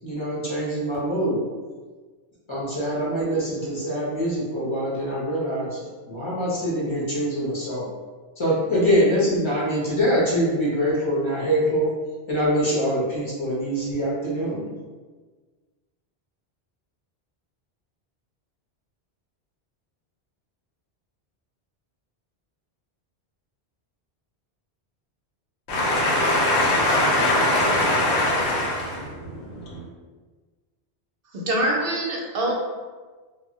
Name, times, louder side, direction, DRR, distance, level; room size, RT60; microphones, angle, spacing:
voice 1, 0.0-1.4 2.5-5.8 6.1-7.9 8.4-11.9 12.3-14.7, equal, 30° left, -6 dB, 0.7 m, -24 dB
voice 2, 25.7-29.8, left 1 dB, 85° left, -3 dB, 0.9 m, -22 dB
voice 3, 31.3-32.5, right 1 dB, 70° right, -1 dB, 0.7 m, -24 dB
2.1 x 2.1 x 3.7 m, 1.4 s
omnidirectional pair, 1.1 m